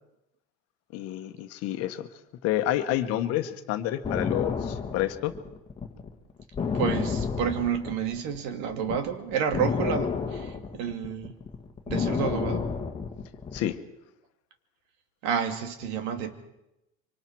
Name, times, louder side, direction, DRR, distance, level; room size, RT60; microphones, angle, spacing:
voice 1, 0.9-2.1 2.4-5.3 13.5-13.8, left 13 dB, 55° left, 8 dB, 1.4 m, -29 dB
sound 1, 4.0-8.4 8.7-13.6, left 5 dB, 15° left, 1.7 m, -30 dB
voice 2, 6.7-11.3 11.9-12.8 15.2-16.3, right 7 dB, 70° right, 7 dB, 2.3 m, -30 dB
25.5 x 25.0 x 4.7 m, 0.90 s
cardioid pair, 160°, 29 cm